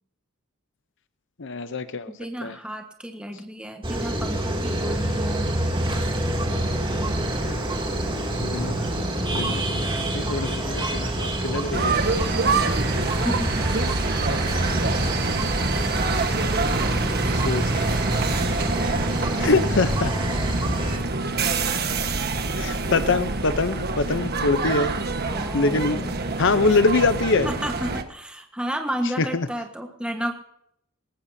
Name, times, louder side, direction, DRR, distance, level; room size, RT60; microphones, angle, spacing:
voice 1, 1.4-2.1 2.4-2.6 8.4-9.1 9.3-9.8 10.1-12.0 17.3-18.0 19.4-20.1 22.5-24.9 25.5-26.1 26.4-27.5 29.2-29.5, left 3 dB, 60° left, 11 dB, 0.8 m, -24 dB
voice 2, 2.1-5.5 12.3-12.8 13.2-13.7 19.1-19.5 19.8-20.5 25.3-26.2 27.4-30.3, equal, 5° right, 3 dB, 1.4 m, -32 dB
sound 1, 3.8-21.0, right 1 dB, 25° right, 2.8 m, -26 dB
sound 2, 11.7-28.0, right 3 dB, 50° right, 1.4 m, -26 dB
21.0 x 19.0 x 2.8 m, 0.72 s
head